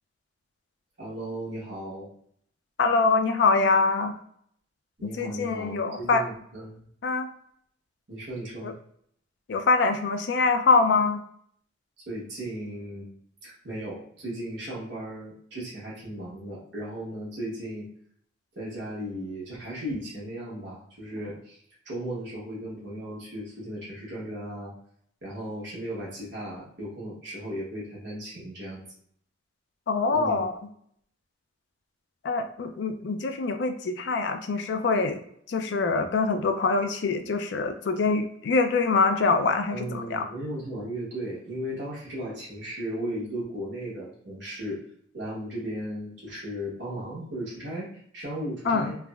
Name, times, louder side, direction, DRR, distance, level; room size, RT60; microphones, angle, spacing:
voice 1, 1.0-2.1 5.0-6.8 8.1-8.7 12.1-13.2 13.4-17.9 18.5-21.6 21.8-24.7 25.2-28.8 30.1-30.4 39.7-44.8 45.1-49.0, right 1 dB, 65° right, -6 dB, 1.1 m, -36 dB
voice 2, 2.8-4.2 5.0-6.2 7.0-7.3 8.6-8.7 9.5-11.2 29.9-30.5 32.2-35.2 35.5-40.2 48.7-48.9, left 4 dB, 60° left, 7 dB, 0.4 m, -24 dB
3.3 x 2.1 x 2.3 m, 0.66 s
head